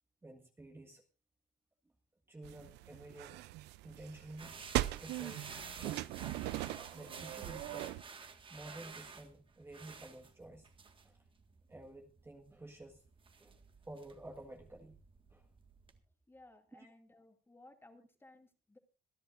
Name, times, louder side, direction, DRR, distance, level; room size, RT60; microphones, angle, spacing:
voice 1, 0.2-1.0 2.3-3.4 3.8-4.6 5.0-6.1 6.9-8.0 8.5-10.7 11.0-11.2 11.7-13.0 13.4-15.0 15.3-15.5 16.7-16.9, right 2 dB, 15° right, 2 dB, 1.6 m, -52 dB
sound 1, 2.4-8.0, right 17 dB, 85° right, 0.5 m, -40 dB
sound 2, 4.4-16.0, right 5 dB, 30° right, 1.7 m, -52 dB
voice 2, 16.3-18.8, left 2 dB, 15° left, 5 dB, 2.4 m, -60 dB
26.5 x 10.5 x 2.6 m, 0.34 s
cardioid pair, 110°, 17 cm